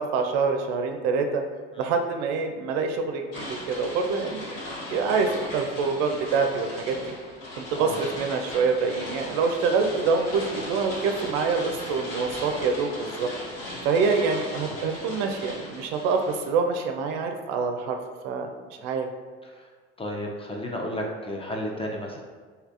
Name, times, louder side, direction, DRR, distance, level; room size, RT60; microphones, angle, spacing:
voice 1, 0.0-1.4 1.8-4.5 4.9-7.1 7.6-13.3 13.8-18.0 18.2-18.5 18.8-19.1, right 4 dB, 65° right, 5 dB, 0.5 m, -26 dB
sound 1, 3.3-16.4, left 1 dB, 65° left, 1.1 m, -37 dB
voice 2, 20.0-22.2, left 1 dB, 15° left, 0 dB, 0.5 m, -33 dB
3.2 x 2.8 x 2.5 m, 1.5 s
hypercardioid pair, 65°, 33 cm